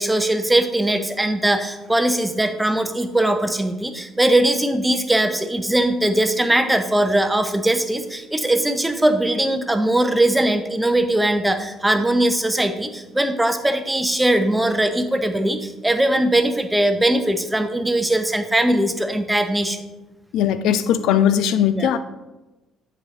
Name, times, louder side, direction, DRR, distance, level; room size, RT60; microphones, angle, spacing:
voice 1, 0.0-19.8 21.7-21.9, right 1 dB, 10° right, 8 dB, 0.8 m, -20 dB
voice 2, 20.3-22.0, left 9 dB, 65° left, 12 dB, 0.4 m, -19 dB
7.8 x 5.3 x 2.9 m, 1.0 s
figure-of-eight pair, 50°, 0 cm